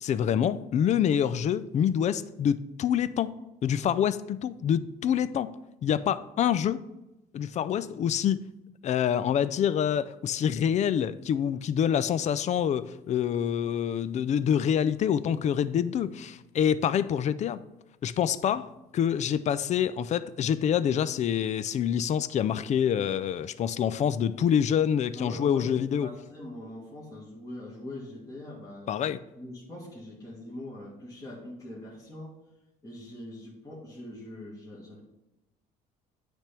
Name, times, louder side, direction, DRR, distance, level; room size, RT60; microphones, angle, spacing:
voice 1, 0.0-3.3 3.6-5.5 5.8-6.8 7.3-8.4 8.8-17.6 18.0-26.1 28.9-29.2, left 9 dB, 45° left, 15 dB, 0.4 m, -26 dB
voice 2, 25.1-28.9 29.4-32.4 32.8-35.0, left 1 dB, 20° left, -7 dB, 1.9 m, -42 dB
9.0 x 3.5 x 5.9 m, 0.94 s
cardioid pair, 110°, 17 cm